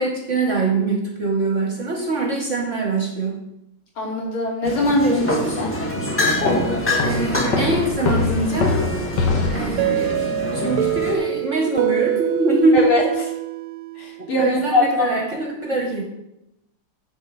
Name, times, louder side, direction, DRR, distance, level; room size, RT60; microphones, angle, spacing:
voice 1, 0.0-3.4 7.0-8.8 9.5-10.1 10.5-12.8 14.2-16.0, right 3 dB, 45° right, 2 dB, 1.2 m, -23 dB
voice 2, 4.0-5.7 12.7-13.1 14.0-15.2, left 1 dB, 75° left, -3 dB, 3.7 m, -21 dB
sound 1, 4.6-11.1, left 1 dB, 5° left, 1.3 m, -25 dB
sound 2, 6.5-10.1, left 3 dB, 60° left, 1.7 m, -24 dB
sound 3, 9.8-14.5, right 14 dB, 90° right, 1.6 m, -25 dB
10.0 x 4.7 x 7.3 m, 0.86 s
omnidirectional pair, 2.3 m